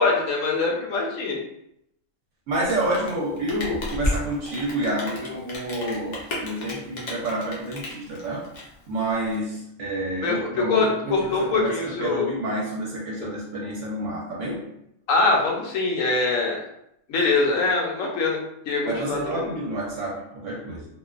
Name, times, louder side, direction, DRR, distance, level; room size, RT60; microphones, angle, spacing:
voice 1, 0.0-1.4 10.2-12.2 15.1-16.6 17.1-18.4 18.7-19.4, left 3 dB, 70° left, -1 dB, 1.0 m, -23 dB
Rain, 2.5-9.3, left 1 dB, 55° left, 0.5 m, -33 dB
voice 2, 2.5-8.5 8.9-14.7 18.9-20.9, right 1 dB, 65° right, -4 dB, 0.9 m, -29 dB
2.5 x 2.2 x 2.3 m, 0.77 s
omnidirectional pair, 1.5 m